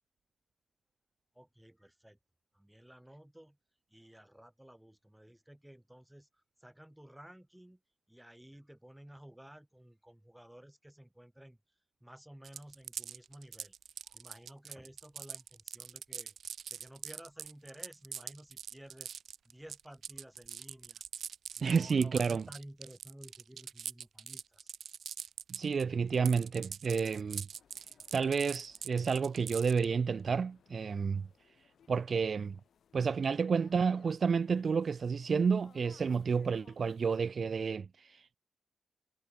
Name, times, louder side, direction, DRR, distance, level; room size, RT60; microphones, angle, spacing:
voice 1, 1.3-2.2 2.5-3.6 3.9-7.8 8.1-11.6 12.0-13.7 14.0-16.4 16.7-19.1 19.4-21.0 21.6-24.7, right 1 dB, 5° right, 4.7 m, -54 dB
sound 1, 12.4-25.8 26.1-29.8, right 8 dB, 70° right, 1.8 m, -43 dB
voice 2, 21.6-22.4 25.5-27.5 28.1-31.3 31.9-32.6 32.9-38.4, right 5 dB, 45° right, 0.4 m, -30 dB
sound 2, 27.5-37.3, left 8 dB, 75° left, 5.7 m, -66 dB
wide cardioid pair, 170°, 0 cm